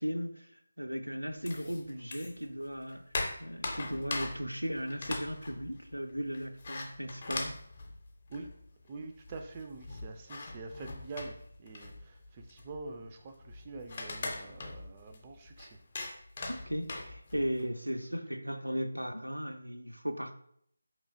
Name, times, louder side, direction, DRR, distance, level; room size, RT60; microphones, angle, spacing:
voice 1, 0.0-7.6 16.5-20.3, equal, 85° right, 6 dB, 0.5 m, -37 dB
sound 1, 1.5-2.5 2.8-8.7 9.0-9.1 9.2-17.6, left 2 dB, 35° left, 0.6 m, -41 dB
voice 2, 8.9-15.8, right 3 dB, 20° right, 4 dB, 0.3 m, -45 dB
4.8 x 3.0 x 2.6 m, 0.67 s
figure-of-eight pair, 155°, 0 cm